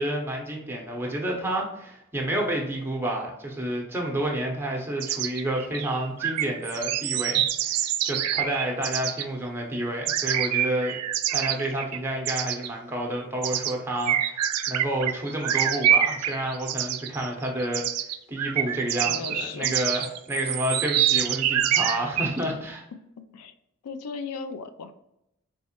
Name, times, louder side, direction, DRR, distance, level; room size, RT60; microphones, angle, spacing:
voice 1, 0.0-11.0 11.3-14.4 14.7-17.8 18.3-22.9, right 1 dB, 10° right, 0 dB, 0.6 m, -29 dB
sound 1, 5.0-9.2 10.1-12.0 12.3-12.7 13.4-13.7 14.1-22.4, right 11 dB, 85° right, 0.3 m, -26 dB
voice 2, 19.0-19.7 23.3-23.5 23.8-24.9, left 5 dB, 80° left, 10 dB, 0.4 m, -36 dB
3.5 x 3.1 x 2.8 m, 0.84 s
head